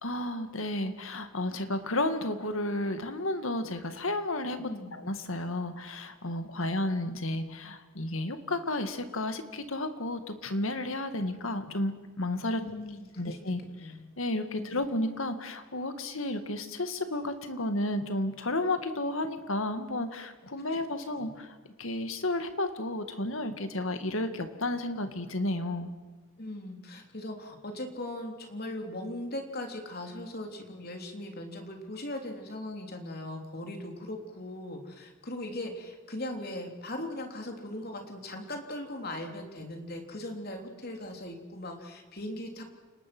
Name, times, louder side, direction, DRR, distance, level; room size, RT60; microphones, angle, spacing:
voice 1, 0.0-4.6 5.0-12.6 13.2-25.9, left 1 dB, 70° left, 9 dB, 2.1 m, -32 dB
voice 2, 4.6-5.0 6.5-6.7 12.5-14.0 14.6-14.8 21.1-21.3 26.4-42.6, left 1 dB, 45° left, 3 dB, 3.5 m, -39 dB
29.5 x 19.5 x 6.2 m, 1.3 s
head